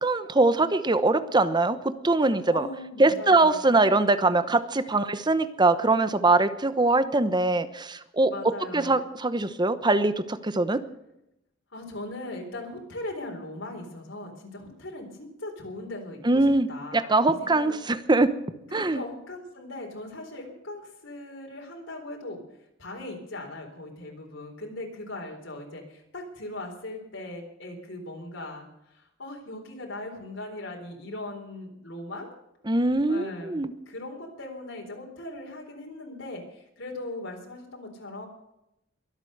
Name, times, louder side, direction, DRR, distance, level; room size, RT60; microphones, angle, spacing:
voice 1, 0.0-2.7 3.0-8.3 8.7-10.8 16.2-18.3 18.7-19.0 32.7-33.7, right 2 dB, 20° right, 12 dB, 1.0 m, -22 dB
voice 2, 2.5-3.7 8.3-9.0 11.7-17.8 18.7-22.4 22.8-32.3 33.1-33.6 33.9-38.3, left 2 dB, 75° left, 1 dB, 3.9 m, -39 dB
23.0 x 8.2 x 6.7 m, 0.84 s
head